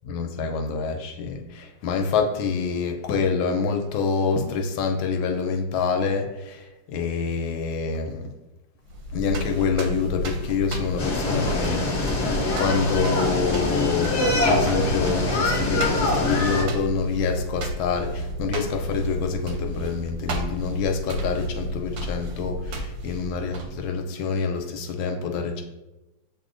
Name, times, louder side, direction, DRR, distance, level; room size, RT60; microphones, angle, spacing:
voice 1, 0.1-8.3 9.1-12.3 12.5-25.6, left 5 dB, 75° left, 4 dB, 1.3 m, -26 dB
sound 1, 8.8-24.0, equal, 70° right, 1.1 m, -33 dB
sound 2, 11.0-16.6, left 2 dB, 50° left, 0.8 m, -24 dB
7.5 x 2.7 x 2.5 m, 1.0 s
omnidirectional pair, 2.4 m